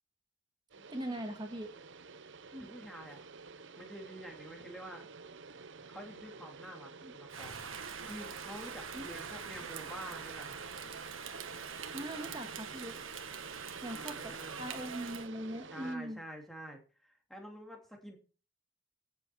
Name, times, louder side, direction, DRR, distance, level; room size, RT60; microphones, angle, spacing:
sound 1, 0.7-16.0, right 4 dB, 65° right, 0.8 m, -51 dB
voice 1, 0.9-1.7 2.5-2.7 7.0-7.1 8.9-9.0 11.9-13.0 13.8-16.2, right 1 dB, 20° right, 4 dB, 1.6 m, -41 dB
voice 2, 2.6-3.2 3.8-5.1 5.9-7.6 8.1-10.6 13.9-14.7 15.7-18.2, equal, ahead, 1 dB, 2.7 m, -48 dB
Rain, 7.3-15.3, right 6 dB, 80° right, 1.5 m, -44 dB
14.5 x 7.6 x 4.6 m, 0.36 s
head